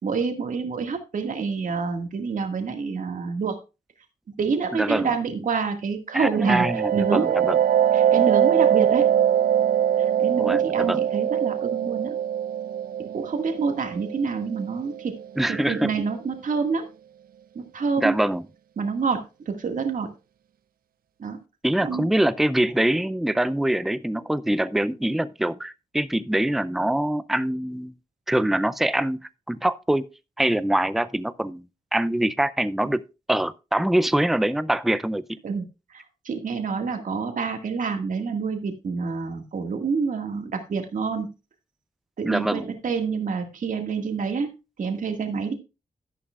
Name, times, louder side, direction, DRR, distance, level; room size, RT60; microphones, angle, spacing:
voice 1, 0.0-3.6 4.4-6.7 6.9-7.3 7.9-9.1 10.0-12.2 13.1-15.1 15.5-16.9 17.6-18.2 18.8-20.1 21.2-21.4 21.8-22.1 35.4-35.6 35.9-41.3 42.2-44.5 44.8-45.5, right 5 dB, 65° right, 1.9 m, -27 dB
voice 2, 4.7-5.1 6.1-7.6 10.4-11.1 15.4-15.9 18.0-18.4 21.6-27.9 28.3-29.2 29.5-30.1 30.4-31.6 31.9-33.0 33.3-35.2 42.2-42.7, right 1 dB, ahead, 0.4 m, -24 dB
sound 1, 6.2-15.7, right 10 dB, 90° right, 0.4 m, -23 dB
12.0 x 10.5 x 2.4 m
wide cardioid pair, 135°, 15 cm